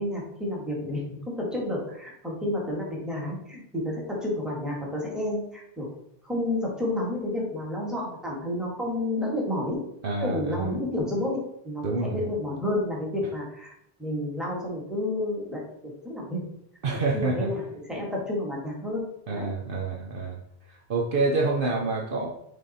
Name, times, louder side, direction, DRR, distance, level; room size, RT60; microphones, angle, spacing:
voice 1, 0.0-5.9 6.2-9.8 10.2-11.8 12.1-13.7 14.0-15.6 16.0-16.4 16.9-17.6 17.9-19.5, left 1 dB, ahead, -3 dB, 1.6 m, -30 dB
voice 2, 10.0-10.7 11.8-12.2 16.8-17.5 19.3-20.4 20.7-22.3, right 3 dB, 60° right, 0 dB, 0.9 m, -27 dB
6.4 x 3.6 x 4.2 m, 0.74 s
omnidirectional pair, 1.0 m